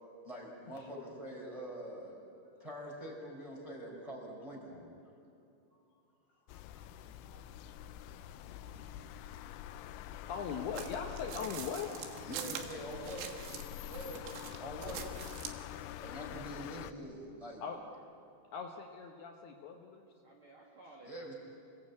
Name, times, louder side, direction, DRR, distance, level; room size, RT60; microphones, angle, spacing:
voice 1, 0.2-2.2 2.6-4.7 6.5-6.9 8.3-9.3 10.8-10.9 12.3-13.3 13.8-14.3 14.6-15.0 16.0-17.6 21.1-21.4, right 1 dB, 5° right, -2 dB, 4.4 m, -45 dB
voice 2, 4.7-5.0 7.2-7.8 9.3-9.8 10.1-11.9 17.6-17.8 18.5-20.1, left 6 dB, 70° left, 2 dB, 2.8 m, -41 dB
sound 1, 6.5-16.9, left 12 dB, 85° left, 3.1 m, -46 dB
sound 2, 10.8-13.7 13.9-15.6, right 9 dB, 85° right, 3.9 m, -44 dB
voice 3, 12.8-13.2 17.6-18.1 20.2-21.1, right 2 dB, 45° right, -2 dB, 1.8 m, -58 dB
27.5 x 19.5 x 8.4 m, 2.7 s
omnidirectional pair, 5.4 m